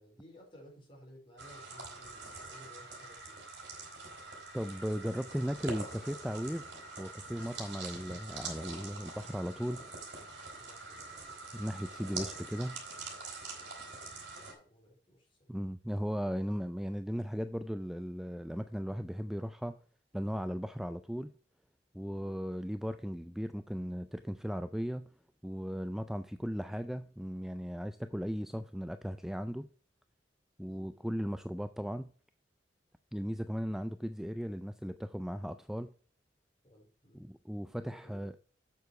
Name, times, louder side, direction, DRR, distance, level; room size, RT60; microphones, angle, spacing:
voice 1, 0.0-3.4 10.6-11.6 14.3-15.6 22.2-22.4 30.7-30.9 36.6-37.3 37.7-38.3, equal, 30° left, 4.5 m, -58 dB
sound 1, 1.4-14.5, right 3 dB, 75° right, 3.6 m, -45 dB
voice 2, 4.5-6.6 7.0-9.8 11.5-12.8 15.5-19.7 20.1-21.3 21.9-25.1 25.4-29.7 30.6-32.1 33.1-35.9 37.1-38.3, equal, ahead, 0.3 m, -37 dB
8.0 x 6.9 x 4.7 m
head